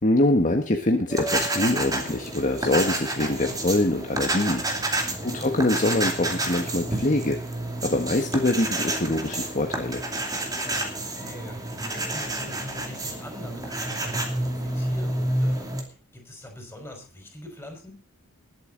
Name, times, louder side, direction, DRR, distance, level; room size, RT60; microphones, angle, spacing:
voice 1, 0.0-4.6 5.2-7.4 7.8-10.0, left 1 dB, 35° left, 3 dB, 1.4 m, -24 dB
sound 1, 1.1-15.8, right 1 dB, 15° right, 2.6 m, -29 dB
voice 2, 5.0-5.5 10.6-15.7 16.1-18.0, left 1 dB, 10° left, 2 dB, 5.3 m, -43 dB
20.5 x 8.2 x 3.9 m, 0.41 s
head